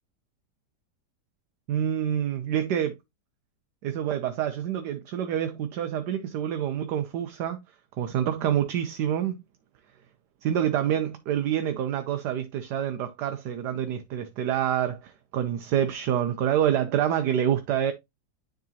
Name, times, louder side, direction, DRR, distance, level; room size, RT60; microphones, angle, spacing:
voice 1, 1.7-2.9 3.8-7.6 8.0-9.4 10.4-17.9, right 10 dB, 75° right, 1.3 m, -27 dB
9.9 x 3.9 x 2.7 m
omnidirectional pair, 1.8 m